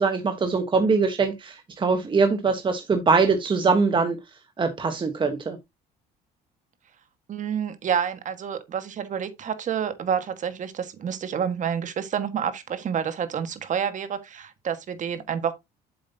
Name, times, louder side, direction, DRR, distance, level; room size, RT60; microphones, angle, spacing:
voice 1, 0.0-5.6, right 4 dB, 30° right, 1.2 m, -23 dB
voice 2, 7.3-15.5, right 8 dB, 45° right, 1.6 m, -28 dB
8.2 x 7.4 x 2.8 m
cardioid pair, 110°, 17 cm